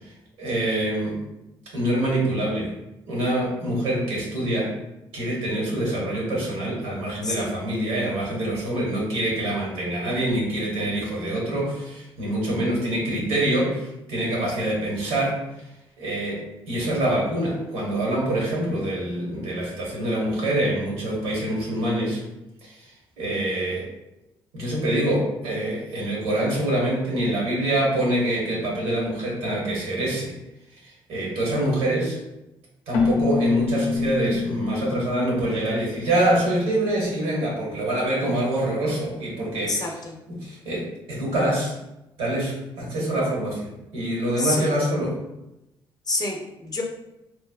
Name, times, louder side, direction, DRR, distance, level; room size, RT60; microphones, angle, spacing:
voice 1, 0.4-1.2 1.7-2.7 3.1-4.7 5.1-15.4 16.0-22.2 22.6-22.8 23.2-23.9 24.5-30.3 30.8-32.2 32.9-39.9 40.3-41.8 42.2-45.2, right 1 dB, 85° right, -4 dB, 1.1 m, -25 dB
Keyboard (musical), 32.9-36.6, left 4 dB, 90° left, 0.4 m, -26 dB
voice 2, 39.6-40.2 44.4-44.7 46.1-46.8, left 3 dB, 35° left, 1 dB, 0.6 m, -28 dB
3.0 x 2.0 x 2.3 m, 0.90 s
supercardioid pair, 55°, 11 cm